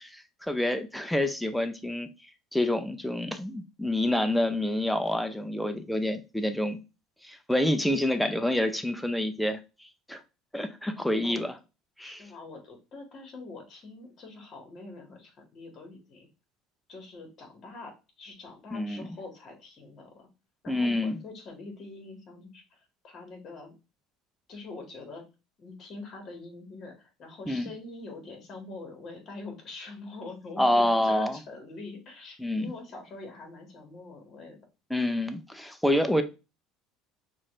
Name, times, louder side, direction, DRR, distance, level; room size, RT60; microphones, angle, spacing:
voice 1, 0.0-2.1 2.5-6.8 7.2-9.6 10.1-10.2 10.5-11.5 12.0-12.2 18.7-19.1 20.7-21.2 27.5-27.7 30.6-31.4 32.4-32.7 34.9-36.2, left 1 dB, ahead, 0.5 m, -27 dB
voice 2, 12.0-16.3 16.9-20.3 20.6-23.8 24.5-25.2 25.6-34.6, left 3 dB, 45° left, 1.8 m, -44 dB
5.9 x 2.5 x 3.2 m
supercardioid pair, 110°, 0 cm